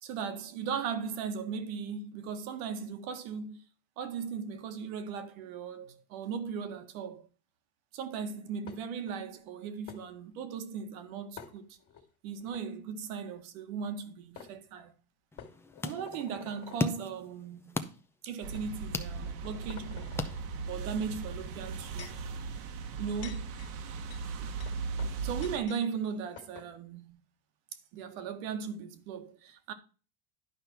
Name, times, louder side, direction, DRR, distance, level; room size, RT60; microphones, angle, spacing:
voice 1, 0.0-3.7 4.0-7.3 7.9-11.7 12.2-14.9 15.8-17.8 18.2-20.1 20.7-22.2 23.0-23.5 24.4-24.5 25.0-27.2 27.9-29.7, right 6 dB, 70° right, 1.8 m, -37 dB
sound 1, 8.7-9.1 9.9-10.0 11.4-12.0 12.4-12.6 13.9-14.0 14.4-14.5 15.4-17.0 17.7-17.9 18.5-18.7 19.2-20.4 21.5-22.3 22.9-25.8 26.1-26.2 26.4-26.7, left 8 dB, 35° left, 1.9 m, -50 dB
sound 2, 15.3-21.0, left 2 dB, 5° left, 0.6 m, -39 dB
sound 3, 18.4-25.6, right 4 dB, 45° right, 1.3 m, -38 dB
11.0 x 5.3 x 4.4 m
supercardioid pair, 140°, 44 cm